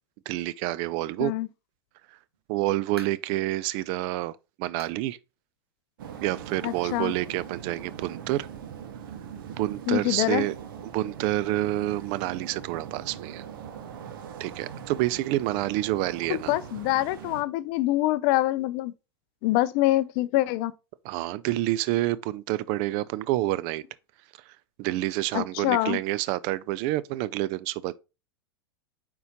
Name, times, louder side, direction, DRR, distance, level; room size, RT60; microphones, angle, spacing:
voice 1, 0.3-1.3 2.5-5.2 6.2-8.5 9.5-10.6 10.8-13.4 14.4-16.6 21.0-23.8 24.8-28.0, right 16 dB, 45° right, 0.4 m, -28 dB
sound 1, 2.3-3.4 3.9-4.0 4.8-5.1 5.4-5.5 6.0-6.1 7.2-7.3, right 4 dB, 85° right, 1.4 m, -47 dB
sound 2, 6.0-17.4, right 8 dB, 60° right, 0.9 m, -41 dB
voice 2, 6.6-7.1 9.9-10.5 16.3-18.9 19.4-20.7 25.3-26.0, left 16 dB, 45° left, 0.4 m, -25 dB
9.1 x 3.7 x 2.9 m
figure-of-eight pair, 90°, 13 cm